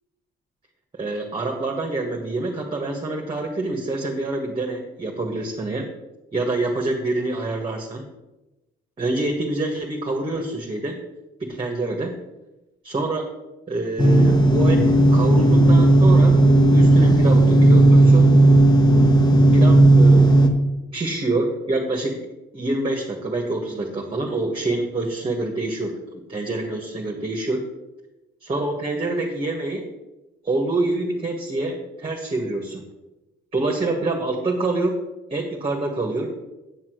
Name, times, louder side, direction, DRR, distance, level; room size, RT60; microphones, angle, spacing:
voice 1, 1.0-5.9 6.3-8.0 9.0-10.9 11.4-12.1 12.8-13.3 13.7-16.4 16.7-18.3 19.5-20.4 20.9-22.2 22.5-27.6 28.4-29.9 30.4-32.8 33.5-35.0 35.3-36.3, right 2 dB, 25° right, 0 dB, 1.6 m, -26 dB
sound 1, 14.0-20.5, right 2 dB, 20° left, 1.3 m, -14 dB
8.9 x 6.0 x 6.4 m, 1.0 s
cardioid pair, 90°, 20 cm